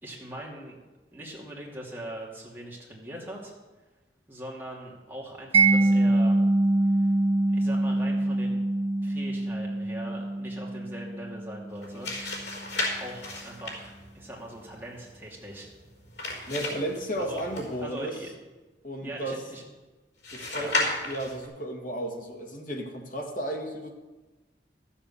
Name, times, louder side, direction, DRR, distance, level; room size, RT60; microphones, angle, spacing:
voice 1, 0.0-0.8 1.1-3.5 4.3-6.4 7.5-8.6 9.0-12.1 12.9-15.7 17.2-17.4 17.8-18.3 19.0-19.6 20.5-20.7, right 1 dB, 10° right, -4 dB, 2.6 m, -41 dB
Mallet percussion, 5.5-12.3, right 2 dB, 35° right, 1.5 m, -25 dB
sound 1, 11.7-18.0 20.2-21.5, left 2 dB, 85° left, 4.7 m, -34 dB
voice 2, 16.5-18.2 18.8-19.4 20.3-23.9, right 1 dB, 50° left, 1 dB, 2.0 m, -33 dB
13.5 x 7.2 x 7.1 m, 1.2 s
head